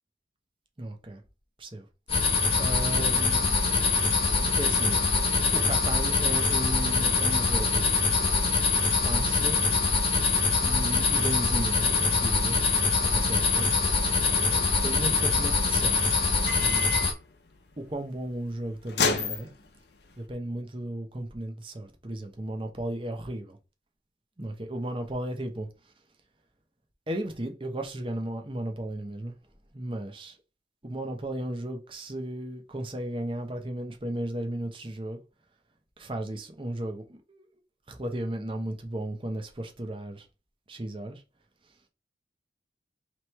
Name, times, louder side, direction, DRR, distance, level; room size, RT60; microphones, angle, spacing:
voice 1, 0.8-1.2 1.6-1.8 2.6-3.6 4.5-8.0 8.8-10.0 10.6-12.6 13.1-16.2 16.6-17.0 17.8-19.5 20.2-23.6 24.4-25.7 27.1-29.3 29.7-30.4 30.8-35.2 36.0-37.4 37.9-40.3 40.7-41.2, right 1 dB, 30° right, 0.8 m, -35 dB
sound 1, 2.1-17.1, left 4 dB, 30° left, 1.2 m, -24 dB
sound 2, 2.5-20.2, left 3 dB, 65° left, 0.7 m, -37 dB
3.3 x 3.1 x 4.4 m
head